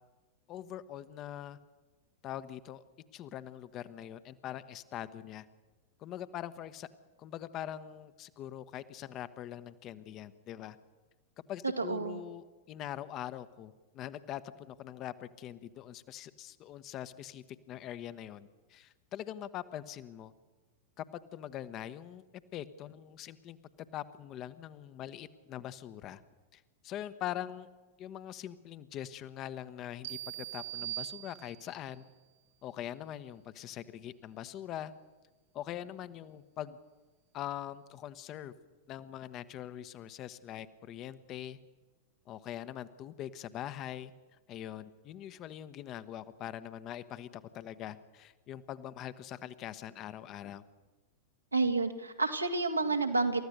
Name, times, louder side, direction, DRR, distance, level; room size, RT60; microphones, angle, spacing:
voice 1, 0.5-1.6 2.2-2.8 3.1-5.5 6.0-6.9 7.2-10.8 11.5-20.3 21.0-21.1 21.3-22.2 22.5-23.6 23.9-26.2 26.5-27.7 28.0-32.0 32.6-34.9 35.5-36.8 37.3-38.5 38.9-41.6 42.3-44.1 44.5-50.6, left 11 dB, 35° left, 13 dB, 1.1 m, -43 dB
voice 2, 11.8-12.2 51.5-53.4, right 3 dB, 80° right, 6 dB, 1.9 m, -30 dB
sound 1, 30.0-31.9, right 17 dB, 55° right, 0.8 m, -41 dB
28.0 x 14.5 x 6.7 m, 1.2 s
figure-of-eight pair, 90°, 0 cm